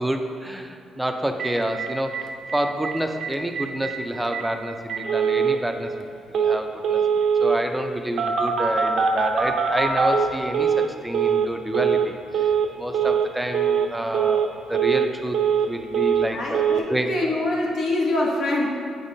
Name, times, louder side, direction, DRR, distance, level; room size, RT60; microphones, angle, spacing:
voice 1, 0.0-7.0 7.4-12.5 12.8-15.4 15.7-17.1, right 1 dB, 5° right, 5 dB, 0.5 m, -28 dB
Telephone, 1.4-1.5 1.8-1.9 2.1-2.2 2.5-2.9 3.2-3.3 3.6-3.9 4.3-4.4 4.9-5.6 6.3-6.6 6.8-7.6 8.2-10.9 11.1-11.5 11.7-12.1 12.3-12.7 12.9-13.3 13.5-13.9 14.1-14.5 14.7-15.7 15.9-16.3 16.5-16.8, right 6 dB, 60° right, 0.6 m, -22 dB
voice 2, 16.3-18.7, left 2 dB, 60° left, -3 dB, 1.2 m, -24 dB
8.0 x 5.1 x 2.7 m, 2.3 s
cardioid pair, 90°, 0 cm